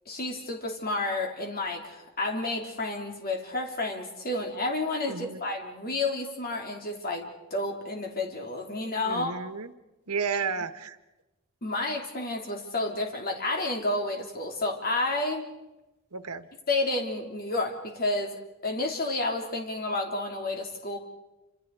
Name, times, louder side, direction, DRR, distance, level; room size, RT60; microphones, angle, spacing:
voice 1, 0.1-9.3 11.6-15.5 16.7-18.4 18.6-21.0, left 2 dB, 45° left, 3 dB, 3.4 m, -30 dB
voice 2, 5.1-5.4 9.0-9.7 10.1-11.0 16.1-16.5, right 5 dB, 90° right, 10 dB, 1.4 m, -32 dB
29.0 x 27.0 x 4.8 m, 1.0 s
head